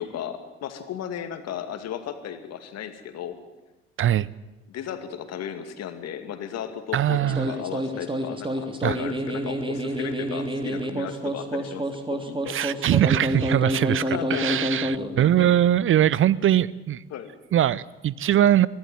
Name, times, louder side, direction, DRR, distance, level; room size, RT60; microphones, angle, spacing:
voice 1, 0.0-3.4 4.7-11.8 12.1-12.6 14.1-14.6 17.1-17.3, left 9 dB, 55° left, 9 dB, 2.5 m, -35 dB
voice 2, 6.9-7.5 8.8-9.0 12.5-17.0 17.5-18.7, right 11 dB, 40° right, 22 dB, 0.7 m, -21 dB
sound 1, 7.1-15.6, equal, 15° right, 3.1 m, -28 dB
24.0 x 16.0 x 9.5 m, 1.1 s
figure-of-eight pair, 50°, 32 cm